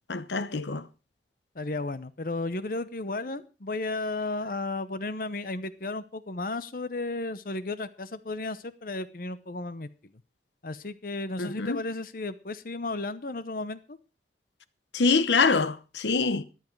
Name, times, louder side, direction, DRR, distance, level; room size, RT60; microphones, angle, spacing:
voice 1, 0.1-0.9 11.4-11.8 14.9-16.4, left 4 dB, 85° left, 0.9 m, -25 dB
voice 2, 1.5-9.9 10.6-14.0, left 2 dB, 50° left, 0.8 m, -34 dB
14.0 x 11.0 x 4.6 m
head